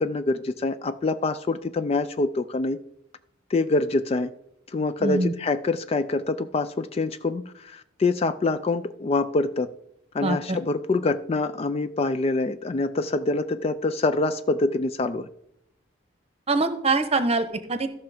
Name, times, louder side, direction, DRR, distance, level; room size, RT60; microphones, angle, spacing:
voice 1, 0.0-2.8 3.5-4.3 4.7-9.7 10.1-15.3, left 3 dB, 30° left, 0.3 m, -25 dB
voice 2, 5.0-5.3 10.2-10.6 16.5-17.9, right 3 dB, 30° right, 0.9 m, -24 dB
14.0 x 5.8 x 4.9 m
head